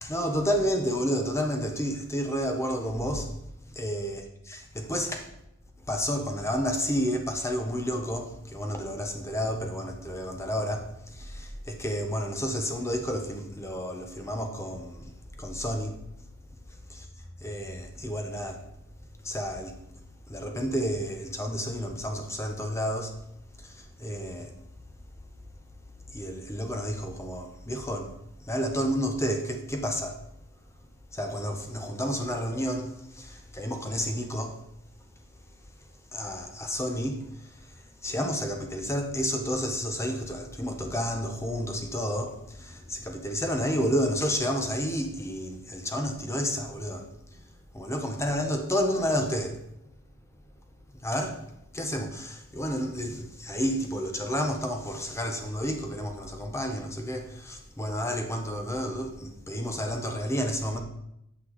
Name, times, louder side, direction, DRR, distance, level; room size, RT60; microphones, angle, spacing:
voice 1, 0.0-3.3 3.8-4.2 4.5-5.3 5.9-15.1 15.4-16.0 16.9-17.1 17.4-18.6 19.2-19.8 20.3-23.1 23.6-24.5 26.1-28.2 28.4-30.2 31.1-34.6 36.1-37.5 38.0-47.1 47.7-49.6 51.0-51.4 51.7-60.8, equal, 15° left, 0.8 m, -30 dB
8.1 x 5.8 x 3.0 m
head